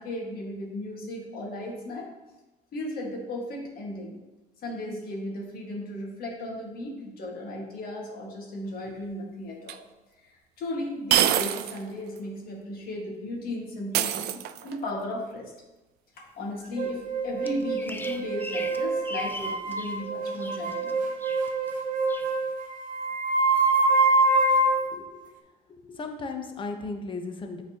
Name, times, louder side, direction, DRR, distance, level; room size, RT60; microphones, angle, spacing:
voice 1, 0.0-2.1 2.7-4.2 4.6-9.8 10.2-10.3 10.6-15.5 16.4-21.0, left 1 dB, 60° left, -1 dB, 1.7 m, -35 dB
sound 1, 9.7-9.8 11.1-11.8 12.2-12.3 13.9-14.8, right 11 dB, 75° right, 0.4 m, -25 dB
sound 2, 16.8-24.9, right 2 dB, 50° right, 1.0 m, -25 dB
Bird vocalization bird call bird song, 17.5-20.0 20.3-20.9 21.2-21.7 22.1-22.3, left 2 dB, 10° left, 0.4 m, -40 dB
voice 2, 24.9-25.2 25.9-27.6, left 3 dB, 30° left, 5 dB, 0.8 m, -35 dB
8.3 x 4.0 x 2.9 m, 1.0 s
cardioid pair, 110°, 17 cm